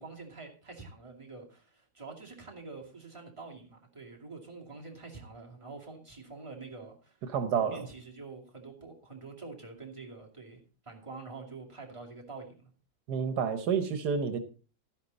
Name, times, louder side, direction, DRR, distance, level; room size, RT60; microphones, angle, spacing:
voice 1, 0.0-7.2 7.6-12.7, right 3 dB, 20° right, 2.6 m, -46 dB
voice 2, 7.3-7.9 13.1-14.4, right 6 dB, 80° right, 1.5 m, -29 dB
12.5 x 10.5 x 4.0 m
omnidirectional pair, 1.7 m